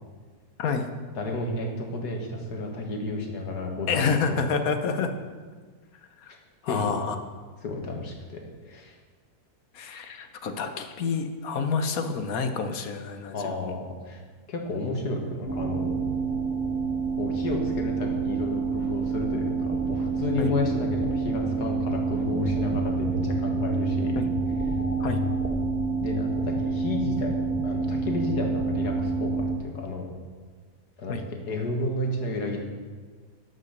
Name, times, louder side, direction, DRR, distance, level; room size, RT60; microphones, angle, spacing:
voice 1, 1.2-4.4 6.6-7.0 7.6-8.4 8.7-9.0 13.3-14.2 14.5-15.9 17.2-24.2 24.7-24.8 25.1-25.2 26.0-30.1 31.0-31.2 31.5-32.6, left 2 dB, 85° left, 2 dB, 2.2 m, -32 dB
voice 2, 3.9-5.1 6.2-6.3 6.6-7.1 9.7-13.7 20.4-20.5 24.2-24.3 25.0-25.2 31.1-31.3, left 5 dB, 65° left, 7 dB, 1.3 m, -28 dB
sound 1, 15.5-29.6, right 4 dB, 10° right, 1.0 m, -27 dB
12.0 x 6.1 x 6.6 m, 1.5 s
omnidirectional pair, 1.7 m